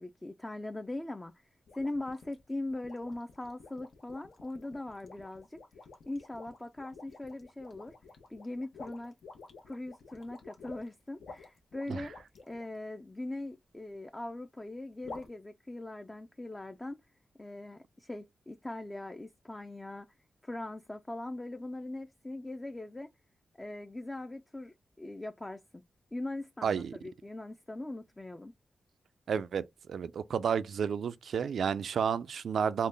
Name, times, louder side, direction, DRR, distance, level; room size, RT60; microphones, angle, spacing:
voice 1, 0.0-5.6 6.1-8.0 8.3-9.1 9.6-12.1 12.5-17.0 17.4-20.1 20.4-23.1 23.6-25.6 26.1-28.5, left 2 dB, 20° left, 0.3 m, -41 dB
sound 1, 1.7-12.7 15.0-15.3, left 3 dB, 80° left, 0.9 m, -50 dB
voice 2, 26.6-26.9 29.3-32.9, right 7 dB, 80° right, 0.3 m, -31 dB
3.8 x 2.2 x 3.2 m
wide cardioid pair, 105°, 0 cm